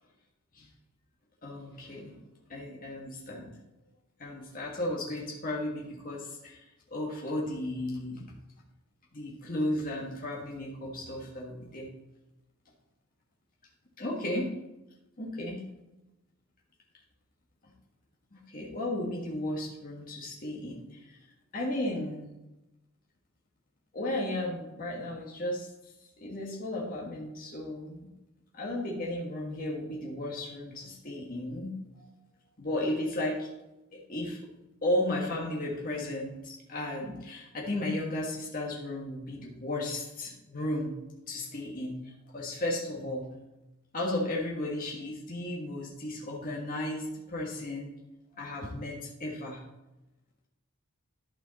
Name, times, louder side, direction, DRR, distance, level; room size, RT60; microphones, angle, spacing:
voice 1, 1.4-2.2 2.5-3.5 4.2-8.2 9.1-11.9 14.0-14.5 15.2-15.6 18.3-21.2 21.5-22.3 23.9-25.7 26.2-28.1 28.5-32.1 32.6-33.5 33.9-34.4 34.8-41.0 41.3-43.3 43.9-47.9 48.3-49.6, left 1 dB, 40° left, -3 dB, 1.7 m, -34 dB
11.5 x 5.6 x 4.1 m, 0.96 s
head